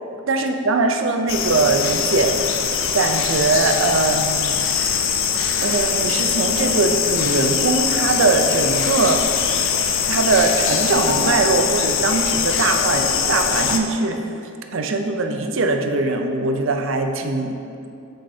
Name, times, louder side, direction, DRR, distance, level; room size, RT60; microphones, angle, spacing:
voice 1, 0.3-2.4 2.9-4.6 5.6-9.3 10.1-14.2 14.7-17.6, right 3 dB, 55° right, 5 dB, 0.5 m, -21 dB
sound 1, 1.3-13.8, left 7 dB, 55° left, 0.5 m, -22 dB
7.8 x 6.5 x 2.7 m, 2.5 s
head